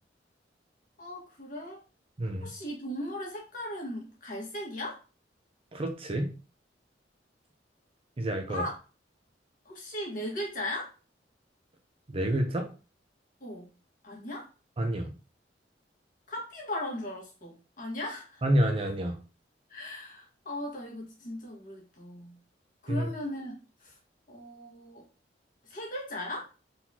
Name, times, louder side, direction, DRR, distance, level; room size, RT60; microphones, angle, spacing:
voice 1, 1.0-1.8 2.4-5.0 8.5-8.7 9.6-10.9 13.4-13.7 14.0-14.5 16.3-18.4 19.7-22.4 22.8-24.0 24.3-25.0 25.7-26.4, left 1 dB, 50° left, -2 dB, 1.7 m, -37 dB
voice 2, 2.2-2.5 5.7-6.3 8.2-8.6 12.1-12.7 14.8-15.1 18.4-19.2 22.9-23.1, right 1 dB, 30° right, 6 dB, 0.6 m, -28 dB
4.0 x 3.9 x 2.9 m, 0.34 s
head